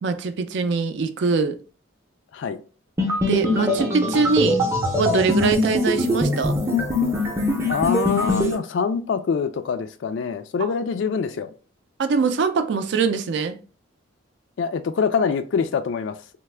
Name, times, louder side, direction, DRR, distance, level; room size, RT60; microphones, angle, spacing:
voice 1, 0.0-1.6 3.3-4.6 5.0-6.6 12.0-13.6, right 4 dB, 60° right, 0.4 m, -22 dB
sound 1, 3.0-8.5, left 1 dB, 15° right, 0.5 m, -22 dB
voice 2, 7.7-11.5 14.6-16.2, left 5 dB, 70° left, 0.3 m, -24 dB
3.3 x 2.1 x 3.2 m
head